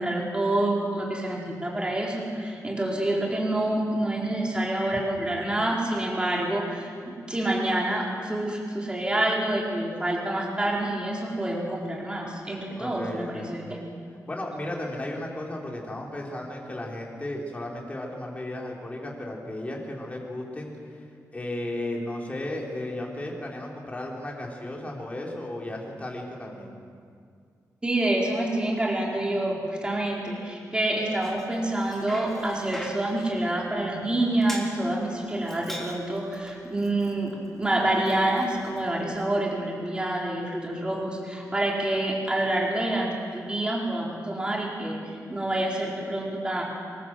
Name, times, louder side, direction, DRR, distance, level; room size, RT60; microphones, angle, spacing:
voice 1, 0.0-13.8 27.8-45.0 45.3-46.6, right 1 dB, 15° right, -3 dB, 4.6 m, -27 dB
voice 2, 12.8-13.5 14.3-20.7 21.3-26.7, left 1 dB, 20° left, -2 dB, 4.6 m, -34 dB
Bicycle, 30.9-39.3, equal, 5° left, 3.6 m, -44 dB
26.0 x 23.5 x 7.8 m, 2.2 s
wide cardioid pair, 155°, 6 cm